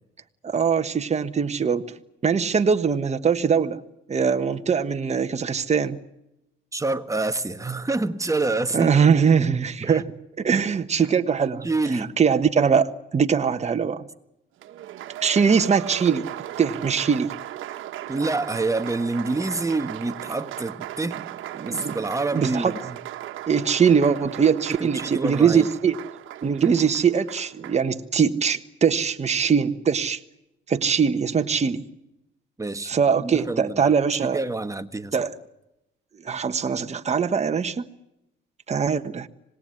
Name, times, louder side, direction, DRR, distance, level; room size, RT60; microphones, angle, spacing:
voice 1, 0.4-1.8 2.2-3.8 4.1-6.0 8.7-10.1 10.4-11.7 11.9-14.0 15.2-16.3 16.6-17.3 21.0-21.1 21.6-22.0 22.3-22.7 23.5-26.0 26.4-30.2 30.7-31.8 32.9-34.4 35.1-35.3 36.2-37.9 38.7-39.3, right 6 dB, 35° right, 7 dB, 1.4 m, -22 dB
voice 2, 6.7-8.9 9.8-10.0 11.6-12.1 18.1-21.2 21.7-23.0 24.7-25.7 32.6-33.9 34.2-35.2, right 3 dB, 15° right, 9 dB, 1.5 m, -27 dB
Applause, 14.6-27.9, right 13 dB, 80° right, 1.4 m, -37 dB
26.0 x 19.5 x 9.7 m, 0.89 s
cardioid pair, 90°, 20 cm